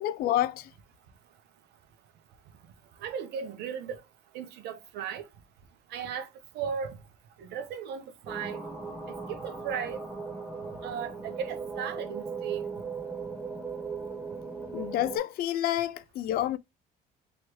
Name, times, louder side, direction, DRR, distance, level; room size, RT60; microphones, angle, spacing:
voice 1, 0.0-0.7 14.7-16.6, left 12 dB, 65° left, 0.4 m, -28 dB
voice 2, 3.0-4.0 4.3-5.2 5.9-6.3 6.5-7.0 7.4-8.6 9.1-10.0 10.8-12.6, right 7 dB, 80° right, 0.9 m, -36 dB
sound 1, 8.3-15.2, right 4 dB, 10° right, 1.7 m, -38 dB
3.1 x 3.1 x 4.5 m
cardioid pair, 110°, 17 cm